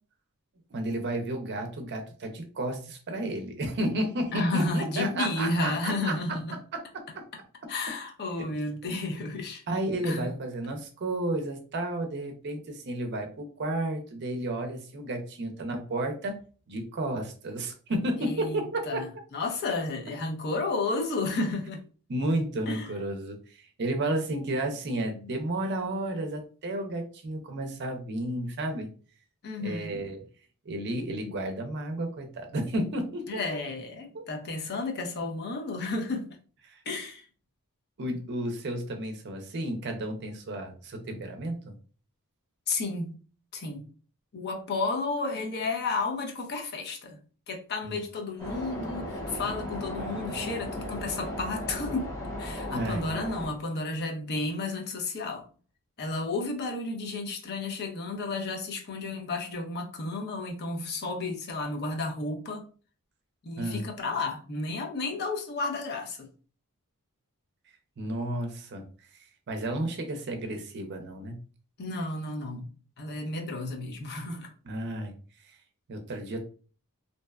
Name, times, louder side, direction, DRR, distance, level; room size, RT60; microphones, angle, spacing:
voice 1, 0.7-6.2 6.7-7.2 8.4-8.5 9.7-16.4 16.7-19.0 22.1-28.9 29.6-30.2 30.7-33.4 34.1-34.2 36.7-36.8 38.0-41.7 47.8-48.0 52.7-53.0 63.6-63.9 68.0-68.8 69.5-71.4 74.7-75.1 75.4-75.5 75.9-76.4, right 1 dB, 50° right, 0.5 m, -32 dB
voice 2, 4.3-6.6 7.7-9.6 10.0-10.4 18.2-21.9 22.7-22.9 29.4-30.0 33.3-36.3 36.9-37.3 42.7-43.2 43.5-43.9 44.3-47.2 47.5-52.1 52.4-55.5 56.0-62.6 63.4-66.3 71.8-72.7 73.0-74.5, left 3 dB, 50° left, 0.5 m, -32 dB
sound 1, 48.4-53.5, left 1 dB, 15° left, 0.8 m, -36 dB
2.6 x 2.1 x 2.2 m
head